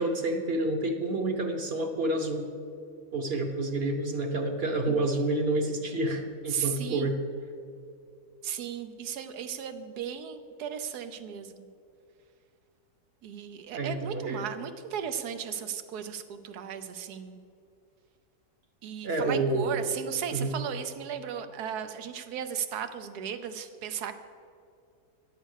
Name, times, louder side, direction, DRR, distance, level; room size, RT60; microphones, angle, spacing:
voice 1, 0.0-2.5 3.1-7.1 13.7-14.4 19.0-19.9 20.3-20.6, right 2 dB, 50° right, 5 dB, 0.9 m, -29 dB
voice 2, 6.5-7.1 8.4-11.7 13.2-17.4 18.8-24.1, right 8 dB, 90° right, 9 dB, 1.3 m, -36 dB
11.0 x 7.3 x 6.4 m, 2.5 s
omnidirectional pair, 1.6 m